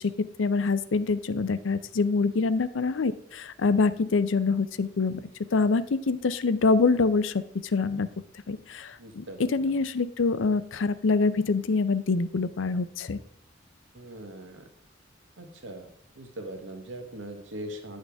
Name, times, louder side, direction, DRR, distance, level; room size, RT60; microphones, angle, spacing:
voice 1, 0.0-5.2 5.5-7.4 7.7-8.1 8.5-13.2, left 4 dB, 85° left, 15 dB, 0.5 m, -25 dB
voice 2, 9.0-9.5 13.9-14.7 15.4-15.9 16.2-18.0, right 1 dB, 85° right, 5 dB, 1.2 m, -41 dB
9.7 x 6.5 x 3.4 m, 0.78 s
head